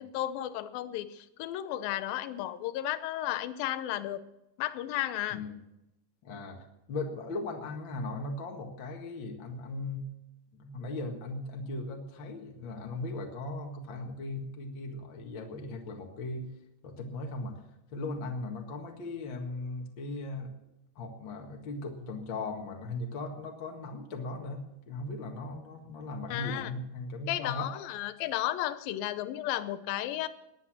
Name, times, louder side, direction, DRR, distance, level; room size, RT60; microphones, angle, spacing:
voice 1, 0.0-4.2 4.6-5.4 26.3-26.7 27.3-30.3, left 13 dB, 75° left, 13 dB, 2.5 m, -33 dB
voice 2, 6.2-10.1 10.5-16.5 16.8-17.6 17.9-20.5 21.0-27.7, left 2 dB, 45° left, 2 dB, 1.8 m, -38 dB
20.5 x 8.3 x 6.2 m, 0.89 s
omnidirectional pair, 4.4 m